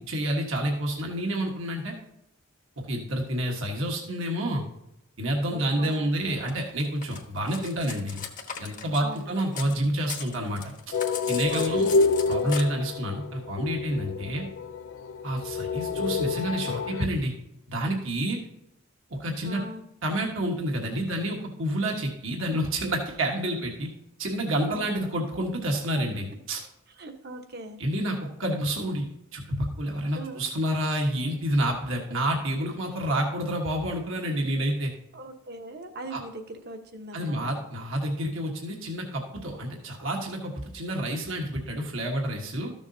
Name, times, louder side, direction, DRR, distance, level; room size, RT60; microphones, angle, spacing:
voice 1, 0.1-1.9 2.9-4.6 5.2-8.2 8.6-10.7 11.3-11.9 12.3-14.4 15.2-17.3 17.7-18.4 19.1-19.6 20.0-23.9 24.2-26.6 27.8-34.9 36.1-36.2 37.1-42.7, right 1 dB, 70° right, 0 dB, 1.4 m, -29 dB
voice 2, 5.5-6.5 9.0-9.3 11.5-12.1 19.4-19.8 24.7-25.1 27.0-27.8 30.1-30.5 35.1-37.5, right 2 dB, 50° right, 5 dB, 1.1 m, -40 dB
Cutlery silverware, 6.5-9.8 10.0-12.6, left 7 dB, 40° left, 1.0 m, -38 dB
sound 1, 10.9-17.1, left 4 dB, 70° left, 0.4 m, -28 dB
13.5 x 7.1 x 2.7 m, 0.86 s
head